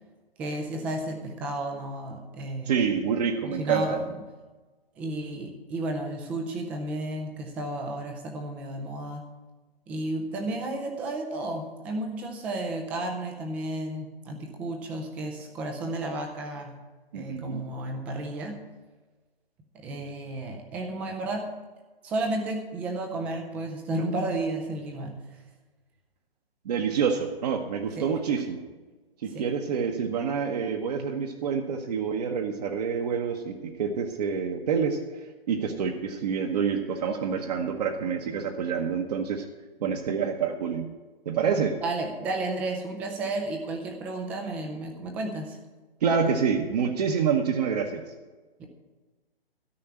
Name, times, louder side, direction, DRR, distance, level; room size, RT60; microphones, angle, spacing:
voice 1, 0.4-2.8 3.5-4.0 5.0-9.3 9.9-16.8 17.1-18.6 19.8-21.5 22.0-25.2 28.0-28.1 29.3-29.5 41.8-45.6 48.6-48.7, right 2 dB, 5° right, 3 dB, 0.4 m, -32 dB
voice 2, 2.7-4.0 17.1-17.6 26.6-28.6 29.2-35.0 35.5-39.4 39.8-40.9 41.3-41.7 46.0-48.0, right 6 dB, 40° right, 3 dB, 1.0 m, -27 dB
13.0 x 5.5 x 8.7 m, 1.3 s
figure-of-eight pair, 140°, 30 cm